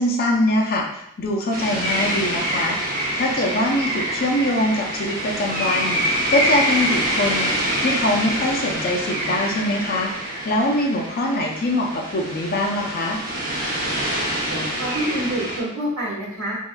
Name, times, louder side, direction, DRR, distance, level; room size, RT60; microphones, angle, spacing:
voice 1, 0.0-2.8 3.2-6.0 6.3-7.5 7.8-10.1 10.4-13.2, left 1 dB, 45° left, 0 dB, 0.4 m, -23 dB
sound 1, 1.5-15.6, right 1 dB, 40° right, 0.7 m, -25 dB
voice 2, 14.5-16.5, right 1 dB, 70° right, -5 dB, 1.1 m, -27 dB
3.5 x 2.5 x 2.2 m, 0.77 s
head